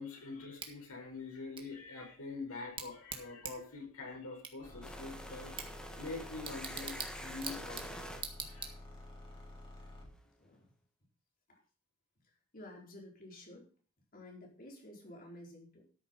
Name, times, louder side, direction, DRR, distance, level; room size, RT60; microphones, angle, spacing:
voice 1, 0.0-5.5 6.0-8.1 8.4-8.7, left 3 dB, 75° left, 1 dB, 5.1 m, -45 dB
Bicycle / Tick, 0.6-9.2, right 5 dB, 25° right, 1.8 m, -47 dB
sound 1, 4.6-10.2, left 1 dB, 25° left, 4.0 m, -51 dB
sound 2, 4.8-9.7, equal, 5° left, 1.8 m, -48 dB
voice 2, 12.5-13.7 14.1-15.8, left 1 dB, 40° left, 0 dB, 4.3 m, -52 dB
13.0 x 7.4 x 5.3 m, 0.39 s
head